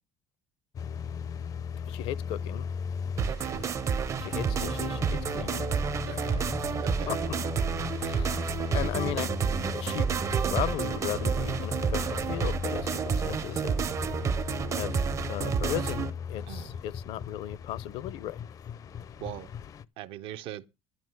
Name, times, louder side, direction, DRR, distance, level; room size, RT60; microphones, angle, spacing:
sound 1, 0.7-19.8, left 7 dB, 35° left, 0.5 m, -37 dB
voice 1, 1.9-2.7 4.2-5.7 6.0-6.6 7.1-7.4 8.0-8.4 8.7-9.3 9.7-10.1 10.4-13.9 14.7-15.0 15.3-18.5, left 13 dB, 70° left, 0.7 m, -36 dB
sound 2, 3.2-16.1, right 6 dB, 30° right, 0.6 m, -30 dB
voice 2, 3.3-3.6 6.1-6.4 6.8-7.2 16.5-16.8 19.2-19.5 20.0-20.8, right 13 dB, 70° right, 0.7 m, -41 dB
13.0 x 5.5 x 7.7 m
cardioid pair, 130°, 10 cm